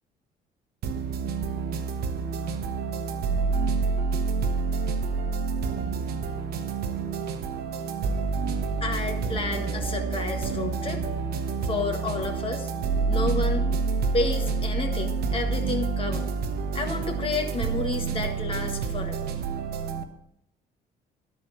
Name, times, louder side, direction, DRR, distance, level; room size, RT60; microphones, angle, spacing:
sound 1, 0.8-20.0, right 4 dB, 70° right, 1.0 m, -28 dB
voice 1, 8.8-11.1 11.6-12.7 13.1-13.7 14.1-16.3 16.7-19.3, left 3 dB, 30° left, 4 dB, 1.7 m, -31 dB
12.5 x 4.5 x 7.6 m, 0.79 s
cardioid pair, 110°, 17 cm